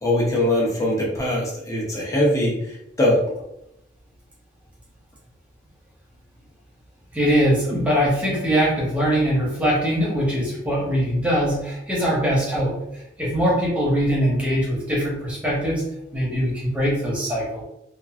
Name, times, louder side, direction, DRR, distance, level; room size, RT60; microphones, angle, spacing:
voice 1, 0.0-2.6 3.0-3.2, left 1 dB, 15° left, -4 dB, 0.7 m, -21 dB
voice 2, 7.1-15.8 16.1-17.6, equal, 5° right, -6 dB, 0.9 m, -22 dB
3.0 x 2.4 x 2.4 m, 0.81 s
head